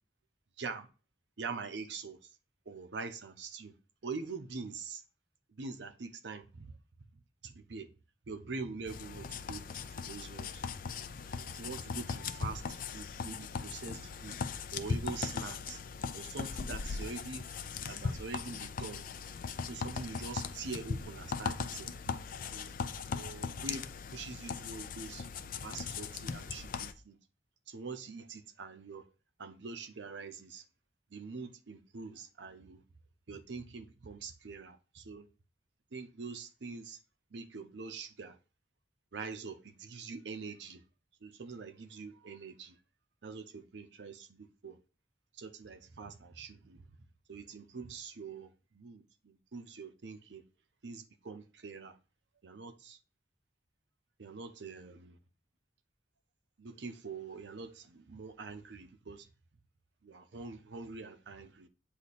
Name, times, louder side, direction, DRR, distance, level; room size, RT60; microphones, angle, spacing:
voice 1, 0.6-0.9 1.4-2.3 2.7-3.7 4.0-5.0 5.5-6.7 7.4-7.9 8.3-9.6 10.0-10.6 11.2-14.4 14.7-15.8 16.1-17.5 17.9-19.0 19.7-22.0 22.5-22.7 23.1-25.3 25.6-27.2 27.7-29.0 29.4-30.6 31.1-32.8 33.3-35.3 35.9-37.0 37.3-38.4 39.1-40.8 41.2-42.8 43.2-44.8 45.3-46.8 47.3-50.4 50.8-51.9 52.4-53.0 54.2-55.2 56.6-59.3 60.0-61.7, right 4 dB, 75° right, 0.6 m, -44 dB
sound 1, 8.9-26.9, left 5 dB, 50° left, 0.4 m, -39 dB
8.2 x 2.8 x 4.1 m
head